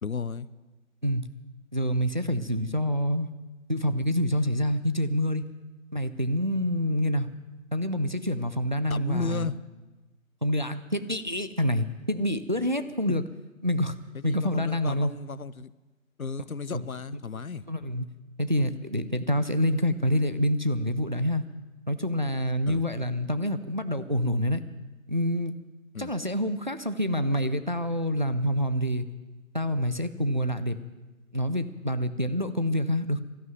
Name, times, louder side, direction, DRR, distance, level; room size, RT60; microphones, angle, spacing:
voice 1, 0.0-0.5 8.9-9.5 13.1-13.2 14.1-15.7 16.2-17.6 22.7-22.8 25.9-26.1, left 5 dB, 80° left, 19 dB, 0.7 m, -34 dB
voice 2, 1.7-3.3 3.7-5.5 5.9-7.3 7.7-9.5 10.4-13.2 13.6-13.9 14.2-15.1 16.7-16.8 17.7-18.0 18.4-21.4 21.9-24.6 25.1-25.5 26.0-29.1 29.5-30.8 31.3-33.2, equal, 35° right, 11 dB, 0.5 m, -27 dB
12.5 x 11.5 x 9.3 m, 1.2 s
figure-of-eight pair, 160°, 42 cm